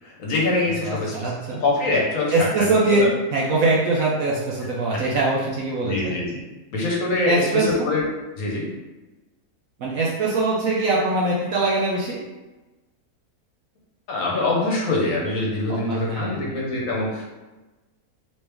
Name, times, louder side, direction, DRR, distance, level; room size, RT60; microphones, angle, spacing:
voice 1, 0.0-1.3 1.6-3.1 5.8-6.4 6.7-8.0 8.3-8.7 14.1-17.2, left 2 dB, 65° left, -3 dB, 1.2 m, -24 dB
voice 2, 0.8-1.6 2.3-6.1 7.2-7.9 9.8-12.2 15.7-16.9, right 2 dB, 70° right, -4 dB, 1.0 m, -23 dB
3.1 x 3.1 x 3.3 m, 1.1 s
omnidirectional pair, 1.6 m